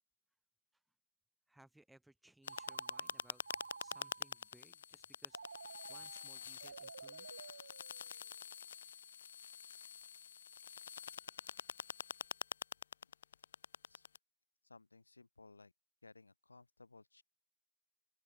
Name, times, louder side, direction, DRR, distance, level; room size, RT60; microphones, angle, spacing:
voice 1, 1.5-5.4 5.9-7.4, right 1 dB, ahead, 3.0 m, -65 dB
sound 1, 2.4-14.2, left 8 dB, 25° left, 0.9 m, -47 dB
Telephone, 2.5-4.5 5.3-8.4, right 4 dB, 45° right, 0.9 m, -53 dB
voice 2, 14.6-15.7 16.0-17.2, left 3 dB, 60° left, 3.6 m, -60 dB
open air
figure-of-eight pair, 165°, 0 cm